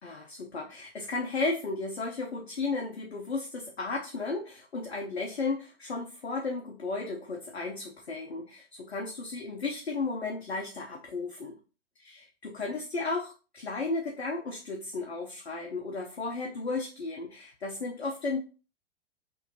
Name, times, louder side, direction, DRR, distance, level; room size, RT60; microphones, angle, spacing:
voice 1, 0.0-11.5 12.0-18.4, left 3 dB, 80° left, 0 dB, 0.9 m, -34 dB
5.8 x 2.8 x 2.8 m, 0.35 s
figure-of-eight pair, 100°, 32 cm